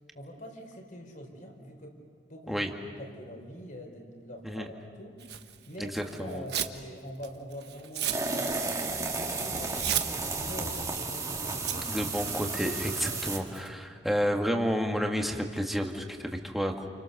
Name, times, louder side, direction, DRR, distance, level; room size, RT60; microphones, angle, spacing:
voice 1, 0.1-2.0 2.3-5.3 5.7-8.9 9.3-11.9 12.8-13.3, equal, 50° left, 3 dB, 4.3 m, -44 dB
Tearing, 5.2-6.8 7.2-13.7, right 11 dB, 65° right, 1.3 m, -37 dB
voice 2, 5.8-6.4 11.9-16.9, equal, ahead, 2 dB, 2.0 m, -30 dB
sound 1, 8.1-13.4, right 3 dB, 20° right, 2.2 m, -33 dB
29.5 x 29.5 x 6.7 m, 2.1 s
head